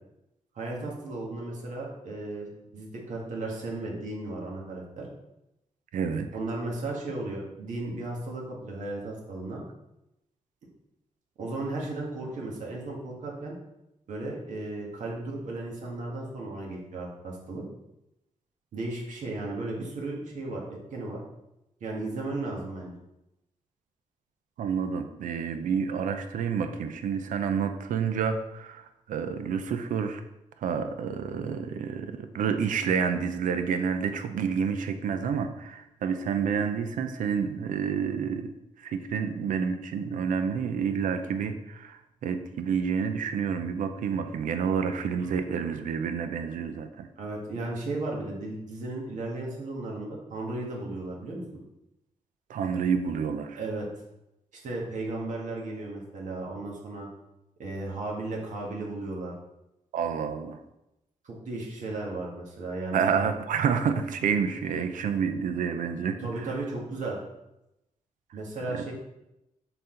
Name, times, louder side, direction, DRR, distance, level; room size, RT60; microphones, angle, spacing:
voice 1, 0.5-5.1 6.3-9.6 11.4-13.5 14.1-17.6 18.7-21.2 21.8-22.9 45.2-45.3 47.2-51.4 53.6-53.9 54.5-57.1 57.6-59.3 61.2-63.0 66.2-67.2 68.3-68.9, right 2 dB, 70° right, -2 dB, 1.7 m, -35 dB
voice 2, 5.9-6.3 24.6-28.8 29.1-30.2 30.6-38.5 38.8-47.1 52.5-53.6 59.9-60.6 62.9-66.2 68.7-68.9, right 6 dB, 90° right, 8 dB, 0.6 m, -29 dB
6.7 x 4.1 x 3.9 m, 0.90 s
cardioid pair, 105°, 13 cm